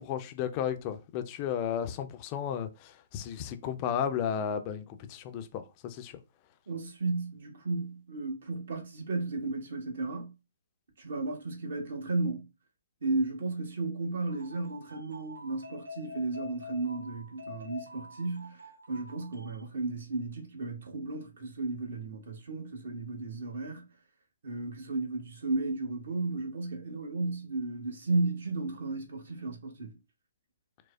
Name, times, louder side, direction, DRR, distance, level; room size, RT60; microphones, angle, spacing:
voice 1, 0.0-6.2, left 8 dB, 30° left, 0.4 m, -34 dB
voice 2, 6.7-10.3 11.0-12.5 13.0-18.6 18.9-23.9 24.4-30.0, right 3 dB, 55° right, 0.9 m, -34 dB
sound 1, 14.3-19.6, left 3 dB, 75° right, 0.6 m, -47 dB
4.7 x 2.0 x 2.2 m
figure-of-eight pair, 125°, 0 cm